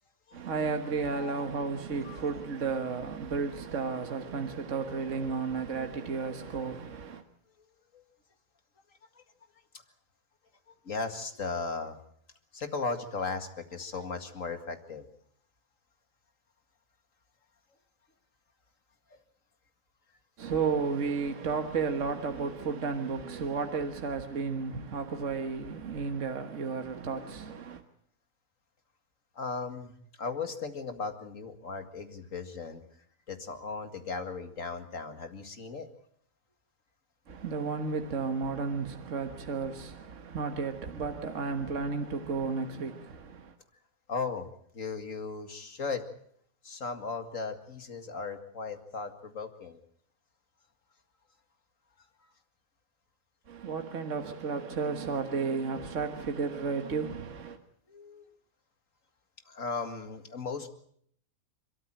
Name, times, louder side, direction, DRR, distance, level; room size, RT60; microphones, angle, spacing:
voice 1, 0.3-7.2 20.4-27.8 37.3-43.6 53.5-57.6, right 5 dB, 60° right, 1.7 m, -33 dB
voice 2, 1.1-1.4 2.0-2.2 7.9-8.0 10.9-12.0 12.5-15.0 19.1-19.2 29.4-32.8 33.3-35.9 44.1-44.5 44.7-46.0 46.6-49.8 57.9-58.2 59.5-60.7, left 4 dB, 65° left, 2.4 m, -37 dB
28.5 x 13.5 x 8.9 m
omnidirectional pair, 1.5 m